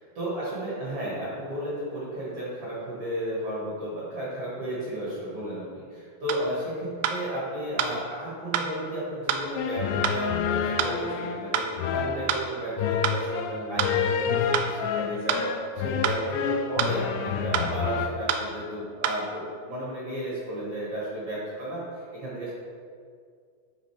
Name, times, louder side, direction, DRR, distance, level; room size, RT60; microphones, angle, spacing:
voice 1, 0.1-22.5, right 1 dB, 50° right, -7 dB, 1.7 m, -33 dB
sound 1, 6.3-6.4 7.0-7.2 7.8-7.9 8.5-8.7 9.3-9.4 10.0-10.2 10.8-10.9 11.5-11.7 12.3-12.4 13.0-13.2 13.8-13.9 14.5-14.7 15.3-15.4 16.0-16.2 16.8-17.0 17.5-17.7 18.3-18.5 19.0-19.2, right 8 dB, 85° right, 2.4 m, -26 dB
sound 2, 9.6-18.1, left 7 dB, 85° left, 2.6 m, -29 dB
9.1 x 3.9 x 4.8 m, 2.1 s
omnidirectional pair, 5.2 m